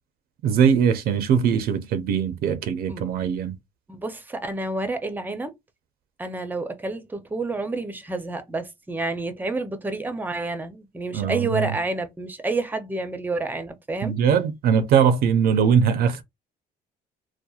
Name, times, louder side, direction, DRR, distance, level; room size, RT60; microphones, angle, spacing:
voice 1, 0.4-3.6 11.1-11.7 14.0-16.2, right 7 dB, 65° right, 0.4 m, -21 dB
voice 2, 3.9-5.5 6.2-14.1, right 2 dB, 10° right, 0.5 m, -29 dB
2.8 x 2.1 x 2.3 m
cardioid pair, 110°, 17 cm